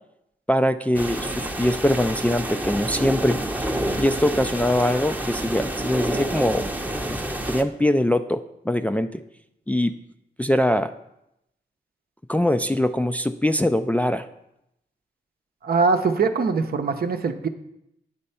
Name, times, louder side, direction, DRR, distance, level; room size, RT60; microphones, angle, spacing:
voice 1, 0.5-3.4 4.0-6.7 7.5-9.1 9.7-9.9 10.4-10.9 12.3-14.3, left 1 dB, 10° left, 8 dB, 0.3 m, -22 dB
sound 1, 0.9-7.6, right 1 dB, 10° right, 0.7 m, -28 dB
voice 2, 15.6-17.5, right 4 dB, 60° right, 7 dB, 0.7 m, -22 dB
9.2 x 3.3 x 5.5 m, 0.82 s
cardioid pair, 55°, 18 cm